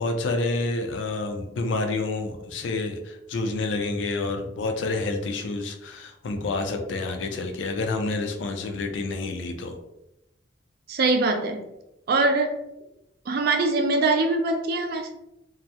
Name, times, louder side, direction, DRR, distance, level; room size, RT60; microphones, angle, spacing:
voice 1, 0.0-9.8, left 3 dB, 75° left, 5 dB, 0.4 m, -28 dB
voice 2, 10.9-11.7 12.1-12.6 13.3-15.1, right 3 dB, 55° right, 5 dB, 0.4 m, -23 dB
2.3 x 2.0 x 2.7 m, 0.88 s
head